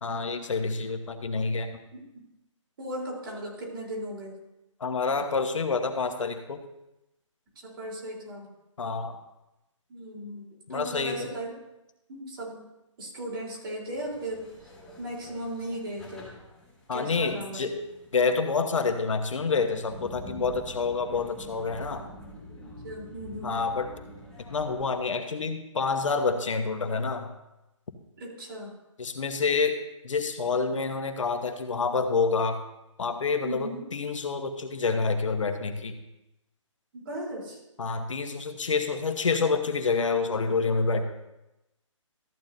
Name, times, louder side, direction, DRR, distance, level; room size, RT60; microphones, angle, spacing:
voice 1, 0.0-1.8 4.8-6.6 8.8-9.2 10.7-11.1 16.9-17.8 18.1-22.1 23.4-23.9 24.4-27.3 29.0-29.8 30.0-32.6 33.0-36.0 37.8-41.0, left 4 dB, 75° left, 7 dB, 1.2 m, -28 dB
voice 2, 2.8-4.3 7.6-8.5 9.9-11.5 12.1-12.6 13.0-14.7 15.0-16.3 16.9-17.6 22.8-23.6 28.2-28.7 33.4-33.8 36.9-37.6, right 1 dB, 45° right, -3 dB, 3.8 m, -37 dB
sound 1, 13.9-25.0, left 1 dB, 5° left, 2.0 m, -47 dB
14.0 x 8.8 x 2.7 m, 0.93 s
hypercardioid pair, 160°, 16 cm